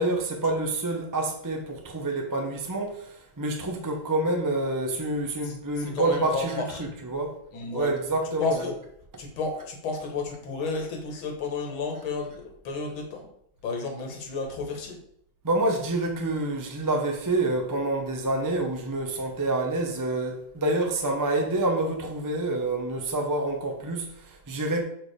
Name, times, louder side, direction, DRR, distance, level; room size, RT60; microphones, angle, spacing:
voice 1, 0.0-7.4 7.7-8.8 15.4-24.8, right 2 dB, 15° right, 0.6 m, -27 dB
voice 2, 5.4-6.9 7.5-7.9 8.4-8.7 9.2-13.3 13.6-15.0, left 4 dB, 80° left, 2.2 m, -32 dB
7.2 x 4.8 x 4.9 m
omnidirectional pair, 2.2 m